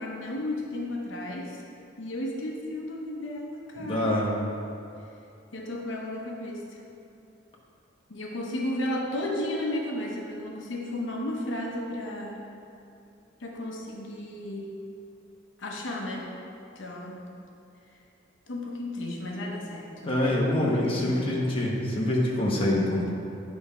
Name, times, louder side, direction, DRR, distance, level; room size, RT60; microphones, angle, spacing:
voice 1, 0.0-1.6 2.0-4.2 5.5-6.8 8.1-12.4 13.4-14.8 15.6-16.3 16.7-17.2 18.5-20.3 20.5-21.4, left 1 dB, 70° left, -1 dB, 0.8 m, -34 dB
voice 2, 3.8-4.3 20.0-23.1, left 1 dB, 30° left, -4 dB, 1.0 m, -25 dB
9.3 x 3.5 x 5.6 m, 2.6 s
head